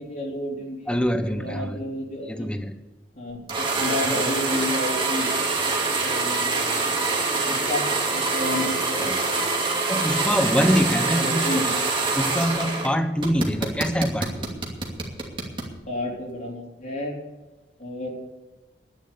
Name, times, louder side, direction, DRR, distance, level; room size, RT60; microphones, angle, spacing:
voice 1, 0.0-1.0 1.2-2.5 3.1-5.3 6.0-6.8 7.5-9.1 11.2-11.7 15.9-17.1 17.8-18.1, left 1 dB, 50° left, -4 dB, 3.9 m, -31 dB
voice 2, 0.9-1.8 2.3-2.8 9.0-9.1 9.9-11.5 12.1-14.5, equal, 5° left, 8 dB, 1.1 m, -24 dB
sound 1, 3.5-12.9 13.2-15.7, right 3 dB, 30° right, 2.6 m, -25 dB
11.0 x 10.5 x 8.5 m, 1.2 s
head